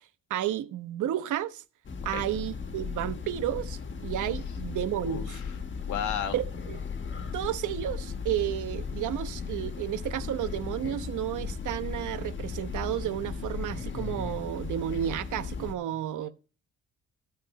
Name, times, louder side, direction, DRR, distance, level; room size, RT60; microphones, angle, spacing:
voice 1, 0.3-1.6 2.0-5.4 6.3-6.4 6.7-6.8 7.3-16.3, right 12 dB, 80° right, 1.1 m, -32 dB
Train, 1.8-15.7, left 5 dB, 40° left, 1.5 m, -36 dB
voice 2, 5.0-5.5 5.9-6.3, left 9 dB, 80° left, 1.7 m, -33 dB
13.0 x 5.2 x 5.3 m
cardioid pair, 90°, 30 cm